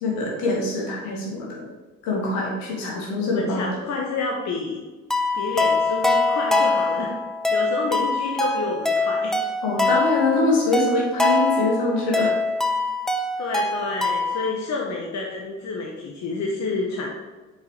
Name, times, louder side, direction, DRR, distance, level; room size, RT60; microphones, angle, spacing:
voice 1, 0.0-1.6 2.0-3.7 9.6-12.3, left 2 dB, 75° left, -2 dB, 1.9 m, -24 dB
voice 2, 3.2-4.8 5.3-7.1 7.5-9.4 13.4-17.1, left 3 dB, 50° left, -1 dB, 1.1 m, -29 dB
sound 1, 5.1-14.5, left 3 dB, ahead, 0.8 m, -23 dB
6.5 x 4.8 x 3.3 m, 1.3 s
hypercardioid pair, 50°, 36 cm